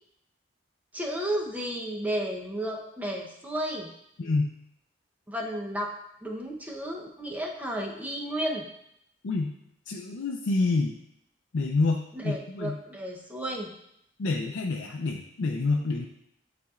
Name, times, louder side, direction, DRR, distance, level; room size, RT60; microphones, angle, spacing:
voice 1, 0.9-3.9 5.3-5.9 6.2-8.6 12.1-13.7, right 1 dB, 10° right, -1 dB, 0.8 m, -32 dB
voice 2, 4.2-4.5 9.2-9.5 9.9-10.9 11.5-12.8 14.2-16.1, left 3 dB, 85° left, 1 dB, 0.5 m, -27 dB
10.5 x 4.2 x 2.4 m, 0.78 s
head